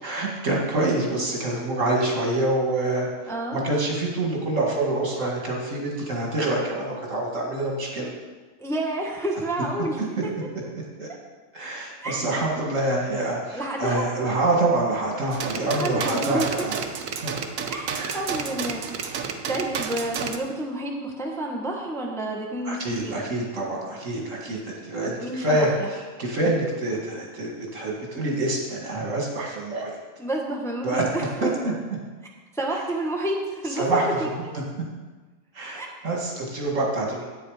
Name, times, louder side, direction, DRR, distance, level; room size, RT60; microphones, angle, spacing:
voice 1, 0.0-3.1 3.5-8.1 11.0-11.1 11.5-16.7 17.2-17.3 17.9-18.2 22.7-30.0 30.8-31.0 31.4-31.7 33.8-34.4 35.5-37.2, right 2 dB, 65° right, -1 dB, 2.4 m, -26 dB
voice 2, 3.3-3.6 8.6-10.3 11.1-11.2 12.0-12.3 13.5-14.1 15.6-16.7 17.7-19.0 19.5-23.2 25.2-25.9 30.2-31.5 32.5-34.6 35.7-35.9, right 1 dB, ahead, 0 dB, 1.1 m, -30 dB
sound 1, 15.3-20.4, right 6 dB, 85° right, 1.2 m, -31 dB
10.5 x 8.6 x 4.9 m, 1.3 s
omnidirectional pair, 1.4 m